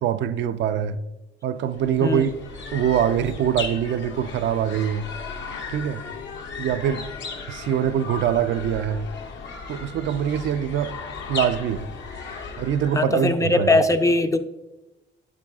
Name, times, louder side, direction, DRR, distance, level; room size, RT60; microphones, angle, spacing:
voice 1, 0.0-1.0 1.4-2.3 2.7-5.1 5.7-6.0 6.6-7.0 7.5-9.1 9.7-10.9 11.3-11.9 12.6-13.7, right 9 dB, 70° right, 0.4 m, -23 dB
sound 1, 1.7-13.2, left 5 dB, 70° left, 1.0 m, -36 dB
voice 2, 12.9-14.4, left 2 dB, 15° left, 0.4 m, -20 dB
8.8 x 7.4 x 2.3 m
cardioid pair, 90°, 20 cm